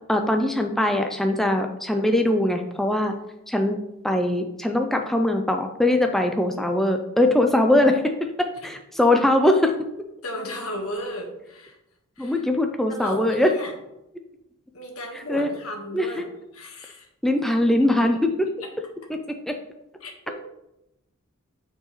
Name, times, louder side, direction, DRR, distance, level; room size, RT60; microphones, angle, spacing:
voice 1, 0.1-3.1 3.5-3.8 4.0-8.1 8.4-9.8 12.2-13.5 15.3-15.5 15.9-16.1 17.2-18.5 19.1-19.2 19.5-19.6, left 1 dB, ahead, 4 dB, 0.4 m, -21 dB
voice 2, 10.2-11.8 12.2-12.4 12.9-13.7 14.7-16.3 16.5-17.1 18.0-18.1 18.6-18.7 20.0-20.4, left 1 dB, 75° left, 1 dB, 1.5 m, -35 dB
8.9 x 4.5 x 3.1 m, 0.89 s
head